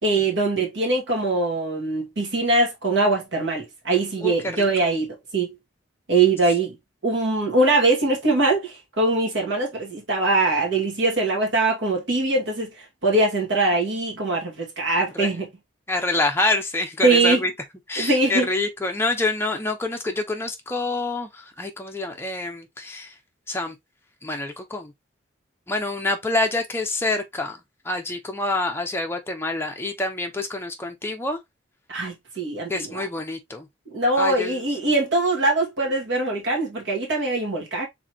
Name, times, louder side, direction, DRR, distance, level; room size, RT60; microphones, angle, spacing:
voice 1, 0.0-5.5 6.1-6.7 7.0-15.5 17.0-17.4 18.0-18.5 31.9-33.1 33.9-37.9, right 2 dB, 70° right, 2.0 m, -22 dB
voice 2, 4.2-4.9 15.1-15.3 15.9-17.5 17.9-23.1 23.5-23.7 24.2-24.9 25.7-27.6 27.8-31.4 32.7-33.7 34.2-34.6, left 2 dB, 10° left, 0.9 m, -27 dB
4.8 x 3.8 x 2.9 m
head